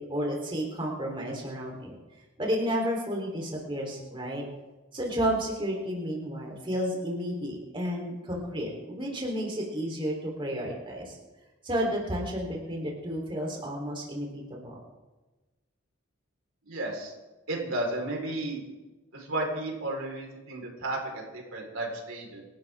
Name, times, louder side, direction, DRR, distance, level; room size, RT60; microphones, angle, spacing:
voice 1, 0.0-1.9 2.4-4.4 4.9-11.2 11.6-14.8, equal, 25° right, -1 dB, 3.7 m, -31 dB
voice 2, 16.6-17.1 17.5-18.6 19.1-22.4, right 2 dB, 90° right, 0 dB, 4.5 m, -33 dB
27.5 x 12.5 x 3.7 m, 1.1 s
head